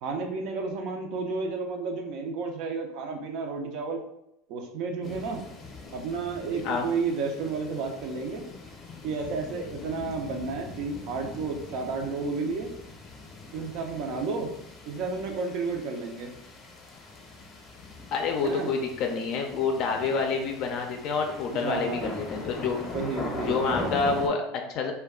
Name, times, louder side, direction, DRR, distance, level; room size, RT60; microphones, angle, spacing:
voice 1, 0.0-4.0 4.5-5.4 5.9-8.4 9.0-12.7 13.5-14.5 14.9-16.3 18.4-18.7 21.5-22.2 22.6-24.0, right 4 dB, 60° right, 3 dB, 0.5 m, -32 dB
sound 1, 5.0-24.3, left 3 dB, 25° left, 0.7 m, -42 dB
voice 2, 18.1-22.8 23.4-24.9, left 5 dB, 55° left, 3 dB, 0.4 m, -28 dB
2.3 x 2.2 x 3.5 m, 0.81 s
supercardioid pair, 115°, 0 cm